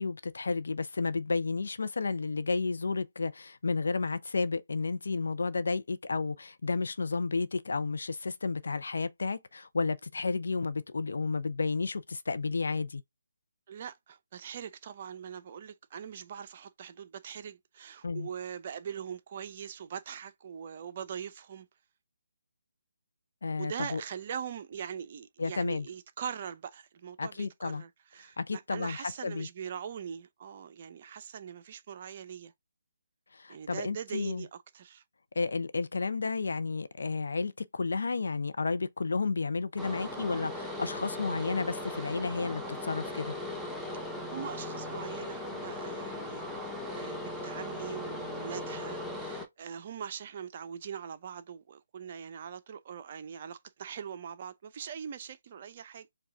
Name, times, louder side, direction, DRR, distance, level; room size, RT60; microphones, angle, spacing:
voice 1, 0.0-13.0 18.0-18.3 23.4-24.0 25.4-25.9 27.2-27.8 28.4-29.5 33.3-34.5 35.4-43.3, left 4 dB, 65° left, 0.5 m, -32 dB
voice 2, 13.7-21.7 23.6-32.5 33.5-35.0 44.0-56.1, right 8 dB, 35° right, 0.6 m, -42 dB
sound 1, 39.8-49.5, left 1 dB, ahead, 0.7 m, -38 dB
4.7 x 2.4 x 3.5 m
figure-of-eight pair, 145°, 0 cm